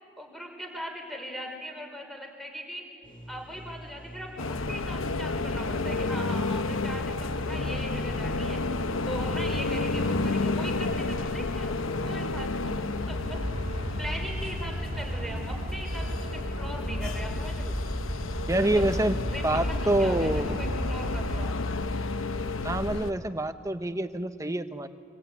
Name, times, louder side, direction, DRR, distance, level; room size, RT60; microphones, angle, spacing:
voice 1, 0.2-2.8 3.3-8.6 9.0-13.4 14.0-17.8 18.6-18.8 19.3-21.5, equal, ahead, 2 dB, 4.4 m, -40 dB
sound 1, 3.0-12.6 18.4-20.7, equal, 25° left, 5.0 m, -45 dB
sound 2, 4.4-23.1, left 2 dB, 85° left, 1.0 m, -31 dB
Aircraft, 13.1-21.5, equal, 30° right, 2.8 m, -35 dB
voice 2, 18.5-19.2 19.4-20.5 22.6-24.9, right 1 dB, 15° right, 9 dB, 0.9 m, -26 dB
25.5 x 25.0 x 9.3 m, 2.2 s
head